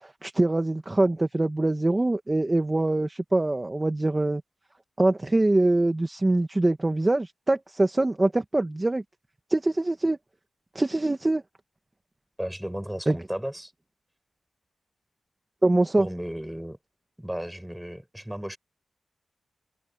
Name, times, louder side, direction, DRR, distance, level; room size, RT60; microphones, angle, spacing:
voice 1, 0.0-4.4 5.0-9.0 9.5-10.2 10.8-11.4 13.1-13.2 15.6-16.1, right 2 dB, 25° right, 1.6 m, -23 dB
voice 2, 12.4-13.7 16.0-16.8 17.2-18.6, equal, 5° right, 7.8 m, -34 dB
cardioid pair, 65°, 0 cm